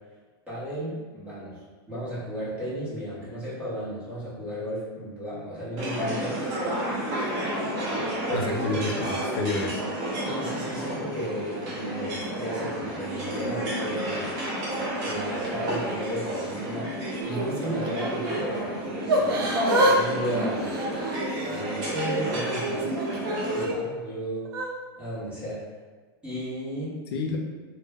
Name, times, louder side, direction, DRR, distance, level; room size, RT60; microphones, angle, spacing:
voice 1, 0.5-1.6 1.9-6.4 8.3-9.3 10.2-14.4 15.0-20.8 21.5-23.0 23.5-24.5 25.0-25.7 26.2-27.0, equal, 10° right, -10 dB, 0.8 m, -34 dB
sound 1, 5.8-23.6, right 1 dB, 30° right, 0.7 m, -31 dB
voice 2, 8.3-9.8 27.1-27.4, left 3 dB, 85° left, 1 dB, 0.4 m, -29 dB
Yell / Crying sobbing, 17.2-18.5 19.1-20.0 20.2-21.6 22.1-23.7 24.4-24.7, right 1 dB, 70° right, 0.5 m, -27 dB
2.1 x 2.1 x 3.3 m, 1.4 s
supercardioid pair, 160°, 13 cm